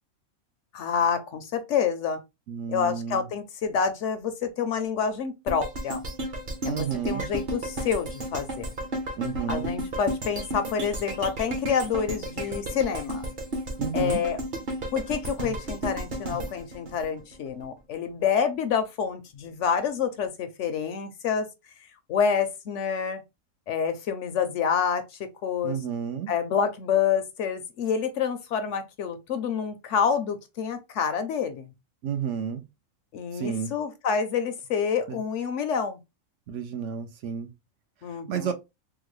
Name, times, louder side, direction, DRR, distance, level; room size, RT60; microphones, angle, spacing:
voice 1, 0.7-2.2 2.7-6.0 6.6-8.7 9.5-13.3 13.9-14.4 14.9-21.5 22.1-23.2 23.7-25.8 26.3-31.7 33.1-36.0 38.0-38.5, left 7 dB, 65° left, 0.8 m, -28 dB
voice 2, 2.5-3.3 6.6-7.3 9.2-9.7 13.8-14.2 25.6-26.3 32.0-32.6 33.3-33.7 35.1-35.2 36.5-37.5 38.3-38.5, right 7 dB, 70° right, 0.9 m, -31 dB
sound 1, 5.5-17.7 18.1-18.2, right 1 dB, 40° right, 0.9 m, -33 dB
3.7 x 2.2 x 3.1 m
omnidirectional pair, 1.5 m